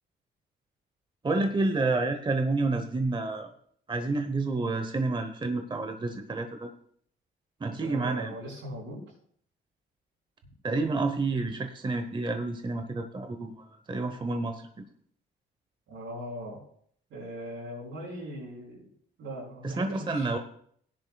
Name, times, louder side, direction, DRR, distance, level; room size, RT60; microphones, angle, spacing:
voice 1, 1.2-3.5 3.9-6.7 7.6-8.3 10.6-14.6 19.6-20.4, right 3 dB, 25° right, 7 dB, 0.9 m, -29 dB
voice 2, 7.8-9.0 15.9-16.6 17.1-18.9 19.2-20.3, equal, 85° right, -3 dB, 5.5 m, -40 dB
16.5 x 10.0 x 2.3 m, 0.63 s
cardioid pair, 90°, 20 cm